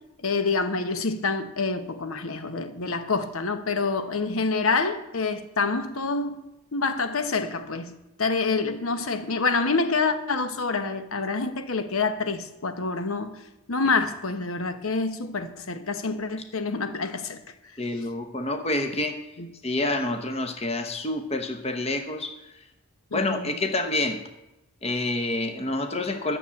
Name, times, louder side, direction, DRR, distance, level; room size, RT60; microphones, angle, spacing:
voice 1, 0.2-6.4 6.7-7.9 8.2-13.4 13.7-17.4 17.9-18.1 19.4-19.5 23.1-23.6, left 4 dB, 70° left, 1.0 m, -27 dB
voice 2, 17.8-19.2 19.6-22.3 23.1-24.2 24.8-26.4, left 2 dB, 25° left, 0.9 m, -28 dB
12.0 x 7.0 x 8.5 m
head